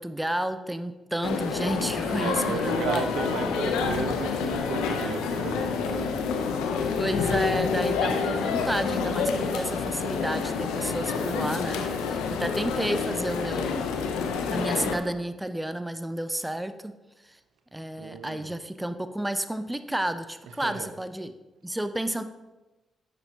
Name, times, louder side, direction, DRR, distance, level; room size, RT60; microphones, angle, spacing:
voice 1, 0.0-3.2 7.0-13.8 14.5-16.9 17.2-17.4 17.7-21.3 21.6-22.2, right 1 dB, 10° right, 10 dB, 0.7 m, -31 dB
sound 1, 1.2-15.0, left 5 dB, 85° left, 0.7 m, -28 dB
voice 2, 2.2-6.2 17.9-18.5 20.5-20.9, right 6 dB, 80° right, 7 dB, 0.7 m, -34 dB
10.5 x 7.2 x 2.9 m, 1.1 s
hypercardioid pair, 45°, 0 cm